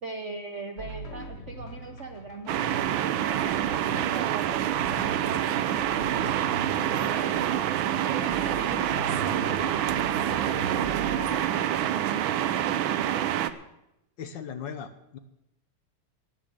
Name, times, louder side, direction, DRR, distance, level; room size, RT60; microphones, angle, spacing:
voice 1, 0.0-4.7 5.3-7.7 8.0-12.2 13.0-13.3, right 3 dB, 55° right, 4 dB, 0.8 m, -41 dB
sound 1, 0.8-11.3, right 1 dB, 30° left, 1.6 m, -40 dB
sound 2, 2.5-13.5, right 11 dB, 70° right, 1.4 m, -27 dB
voice 2, 14.2-15.2, left 7 dB, 65° left, 9 dB, 1.4 m, -38 dB
12.5 x 9.3 x 7.5 m, 0.89 s
omnidirectional pair, 2.4 m